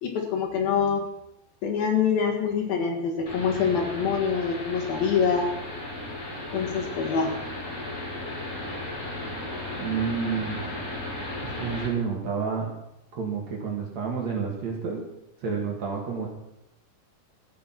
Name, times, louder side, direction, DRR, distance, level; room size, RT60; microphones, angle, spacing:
voice 1, 0.0-1.0 1.6-5.5 6.5-7.4, left 6 dB, 65° left, 2 dB, 3.2 m, -25 dB
sound 1, 3.3-11.9, left 1 dB, 20° left, 3.7 m, -35 dB
voice 2, 9.8-10.6 11.4-12.7 13.1-15.0 15.4-16.3, right 6 dB, 50° right, -1 dB, 2.7 m, -29 dB
13.5 x 8.5 x 6.0 m, 0.86 s
omnidirectional pair, 5.0 m